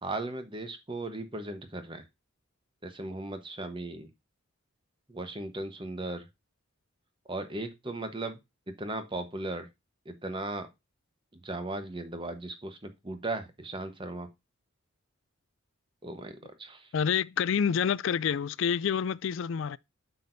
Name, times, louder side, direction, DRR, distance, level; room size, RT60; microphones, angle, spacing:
voice 1, 0.0-2.0 2.8-4.1 5.1-6.2 7.3-8.4 8.8-9.7 10.0-10.7 11.3-14.3 16.0-16.9, right 2 dB, 25° right, 1.0 m, -37 dB
voice 2, 16.9-19.8, left 7 dB, 60° left, 0.3 m, -28 dB
8.3 x 6.1 x 2.6 m
head